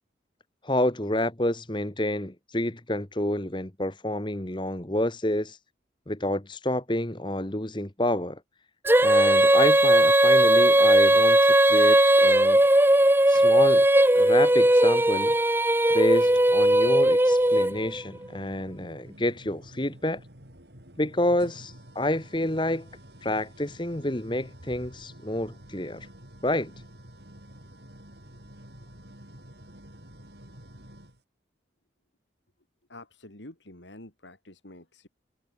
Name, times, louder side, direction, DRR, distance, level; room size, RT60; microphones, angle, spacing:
voice 1, 0.6-5.6 6.1-8.4 9.0-12.6 13.3-13.9 14.1-15.3 15.9-20.2 21.0-22.9 23.2-26.1 26.4-26.7, left 1 dB, 25° left, 1.8 m, -28 dB
Female singing, 8.9-18.0, right 1 dB, 10° right, 0.9 m, -18 dB
sound 1, 13.3-14.0 15.3-15.4 16.2-31.2, right 1 dB, 65° right, 6.9 m, -49 dB
voice 2, 32.9-35.1, left 1 dB, 85° left, 4.3 m, -47 dB
head